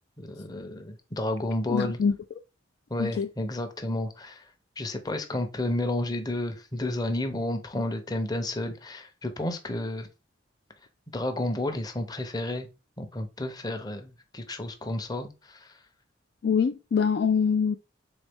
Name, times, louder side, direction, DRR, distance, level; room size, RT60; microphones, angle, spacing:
voice 1, 0.2-2.0 2.9-10.1 11.1-12.7 13.0-15.8, left 1 dB, 20° left, 0.6 m, -31 dB
voice 2, 1.7-2.1 3.0-3.3 16.4-17.8, left 6 dB, 55° left, 0.3 m, -24 dB
4.0 x 3.6 x 3.4 m
head